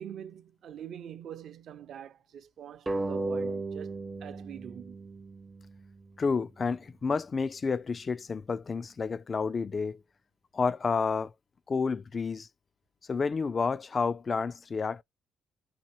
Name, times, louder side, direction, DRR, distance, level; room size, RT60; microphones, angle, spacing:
voice 1, 0.0-5.0, right 9 dB, 65° right, 0.6 m, -44 dB
sound 1, 2.9-6.1, right 2 dB, 20° right, 0.5 m, -35 dB
voice 2, 6.2-10.0 10.5-11.3 11.7-12.5 13.1-15.0, left 5 dB, 35° left, 0.3 m, -30 dB
4.2 x 2.5 x 2.9 m
cardioid pair, 90°, 0 cm